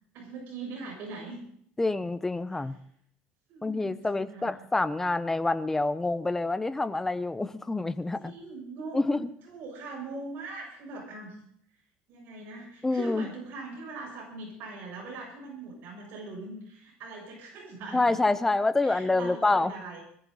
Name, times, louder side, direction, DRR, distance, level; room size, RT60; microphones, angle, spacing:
voice 1, 0.1-1.4 3.5-4.5 8.2-11.4 12.1-18.2 18.8-20.0, right 3 dB, 55° right, -1 dB, 7.4 m, -41 dB
voice 2, 1.8-2.8 3.6-8.3 8.9-9.3 12.8-13.3 17.9-19.7, left 2 dB, 10° left, 12 dB, 0.8 m, -27 dB
21.0 x 14.5 x 4.1 m, 0.64 s
cardioid pair, 145°, 4 cm